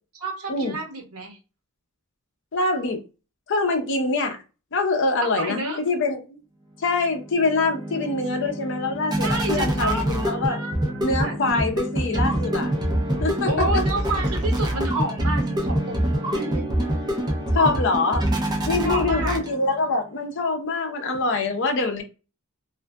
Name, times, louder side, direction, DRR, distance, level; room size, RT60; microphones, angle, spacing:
voice 1, 0.2-1.4 5.2-5.8 9.2-11.4 13.5-16.6 18.8-19.4, right 2 dB, 75° right, 0.9 m, -30 dB
voice 2, 2.5-3.0 3.5-4.4 4.7-6.4 6.8-10.6 11.0-12.7 13.2-13.8 17.5-18.3 18.7-22.0, left 3 dB, 55° left, 0.6 m, -24 dB
sound 1, 7.0-19.8, right 1 dB, 20° right, 0.5 m, -25 dB
2.5 x 2.4 x 2.2 m
head